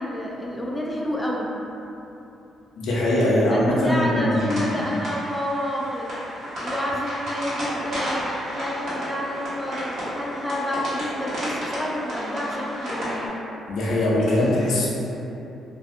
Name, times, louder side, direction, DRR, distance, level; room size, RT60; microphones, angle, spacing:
voice 1, 0.0-1.6 3.5-6.2 6.6-13.3, left 1 dB, 5° left, -3 dB, 0.3 m, -29 dB
voice 2, 2.8-4.8 13.7-14.9, left 1 dB, 75° left, -6 dB, 0.5 m, -21 dB
sound 1, 4.4-13.3, equal, 65° right, 1.2 m, -32 dB
2.5 x 2.3 x 2.6 m, 2.9 s
cardioid pair, 90°, 0 cm